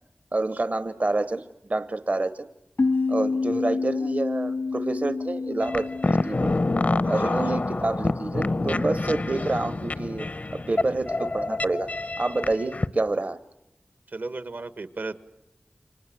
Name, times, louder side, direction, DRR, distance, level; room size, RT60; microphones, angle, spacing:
voice 1, 0.3-1.4 1.7-2.5 3.1-6.5 7.1-10.3 10.5-11.9 12.2-13.4, right 2 dB, 50° right, 13 dB, 1.0 m, -28 dB
sound 1, 2.8-8.1, left 4 dB, 80° left, 2.5 m, -29 dB
sound 2, 5.6-12.9, left 2 dB, 50° left, 0.9 m, -27 dB
voice 2, 7.0-7.4 14.1-15.2, right 3 dB, 75° right, 13 dB, 1.5 m, -35 dB
30.0 x 25.5 x 7.8 m, 0.88 s
wide cardioid pair, 60°, 3 cm